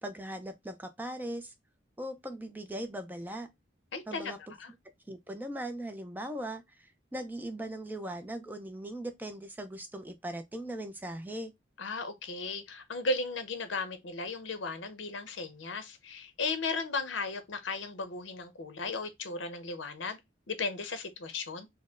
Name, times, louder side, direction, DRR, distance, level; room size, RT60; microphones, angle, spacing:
voice 1, 0.0-1.5 2.0-3.5 4.1-4.4 5.1-6.6 7.1-11.5, right 1 dB, 10° right, 0.4 m, -39 dB
voice 2, 3.9-4.7 11.8-20.2 20.5-21.7, left 3 dB, 90° left, 0.8 m, -36 dB
4.2 x 2.1 x 3.6 m
head